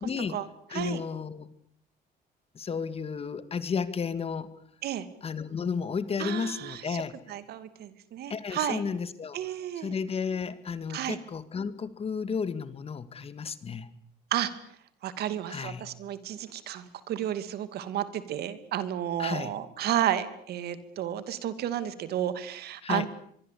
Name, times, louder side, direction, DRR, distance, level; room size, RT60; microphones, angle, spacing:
voice 1, 0.0-0.4 0.7-1.5 2.5-4.5 5.2-7.2 8.3-9.4 9.8-13.9 15.5-15.8 19.2-19.5 22.8-23.1, left 6 dB, 35° left, 13 dB, 2.1 m, -33 dB
voice 2, 6.2-7.0 7.3-8.8 9.3-9.9 10.9-11.2 14.3-14.5 15.0-23.1, right 11 dB, 70° right, 12 dB, 2.6 m, -32 dB
24.5 x 23.0 x 8.5 m, 0.69 s
cardioid pair, 110°, 17 cm